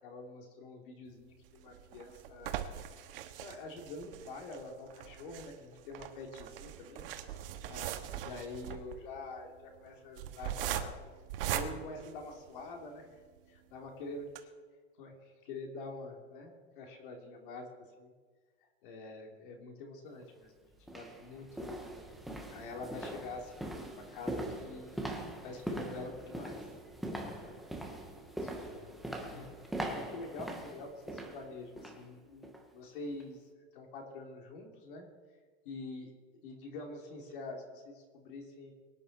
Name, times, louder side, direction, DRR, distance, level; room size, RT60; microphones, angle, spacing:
voice 1, 0.0-2.6 3.0-3.1 3.4-7.1 7.7-11.0 11.5-13.2 13.5-14.5 15.0-17.7 18.0-18.1 18.6-20.5 20.9-22.1 22.5-25.0 25.4-26.6 27.2-27.5 28.4-28.9 29.2-29.5 29.9-35.1 35.6-36.1 36.4-38.7, left 3 dB, 50° left, 3 dB, 3.1 m, -46 dB
sound 1, 1.4-12.8 13.4-13.5 13.8-13.9 14.2-14.4, right 11 dB, 60° right, 1.3 m, -40 dB
sound 2, 20.1-20.2 20.8-32.1 32.4-32.7 33.1-33.2, right 1 dB, ahead, 0.3 m, -42 dB
23.0 x 9.7 x 4.3 m, 1.5 s
supercardioid pair, 180°, 32 cm